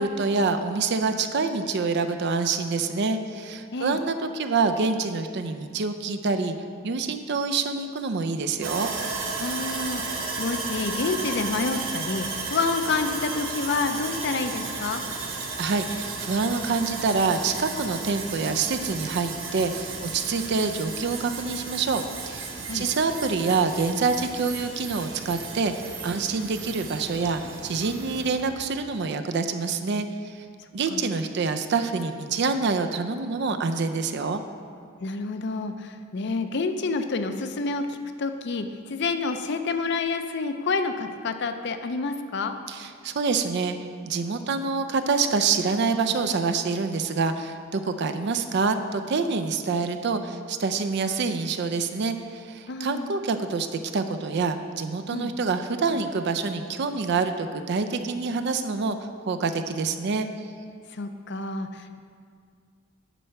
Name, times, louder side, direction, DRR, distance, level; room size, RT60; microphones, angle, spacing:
voice 1, 0.0-6.6 6.8-8.9 15.6-30.3 30.7-34.4 42.7-43.8 44.0-59.0 59.3-60.3, right 4 dB, 60° right, 8 dB, 0.5 m, -26 dB
Sawing, 8.6-28.5, right 4 dB, 80° right, 1.2 m, -34 dB
voice 2, 9.4-15.0 22.7-22.9 30.9-31.0 35.0-42.6 52.7-53.1 55.1-55.3 60.9-62.0, left 4 dB, 60° left, 8 dB, 0.5 m, -28 dB
10.0 x 4.2 x 5.8 m, 2.1 s
head